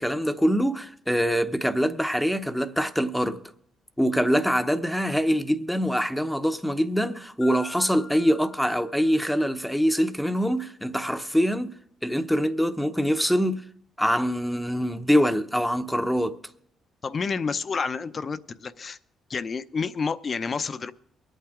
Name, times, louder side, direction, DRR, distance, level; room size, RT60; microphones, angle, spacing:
voice 1, 0.0-3.4 4.0-11.8 12.0-13.6 14.0-16.4, equal, ahead, 0.8 m, -24 dB
Marimba xylophone, 7.4-9.6, left 5 dB, 75° left, 0.8 m, -45 dB
voice 2, 17.0-19.0 19.3-20.9, left 5 dB, 40° left, 0.7 m, -29 dB
23.5 x 8.8 x 3.7 m
cardioid pair, 90°, 0 cm